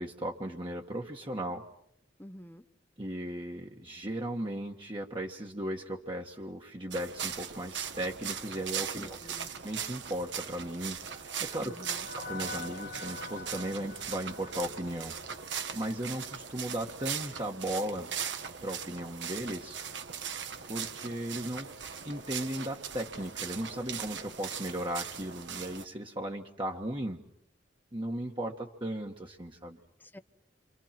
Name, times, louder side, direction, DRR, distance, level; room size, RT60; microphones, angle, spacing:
voice 1, 0.0-1.6 3.0-9.3 9.6-11.7 12.1-15.1 15.7-18.1 18.6-19.8 20.7-21.7 22.0-27.2 27.9-29.8, right 1 dB, 25° right, 0 dB, 1.6 m, -36 dB
voice 2, 2.2-2.6 8.9-9.5 11.6-12.1 30.0-30.2, equal, 10° left, 10 dB, 1.0 m, -48 dB
sound 1, 6.9-25.8, right 7 dB, 80° right, 1.9 m, -39 dB
sound 2, 10.6-15.9, left 3 dB, 65° left, 1.2 m, -46 dB
29.0 x 26.5 x 6.0 m, 0.73 s
head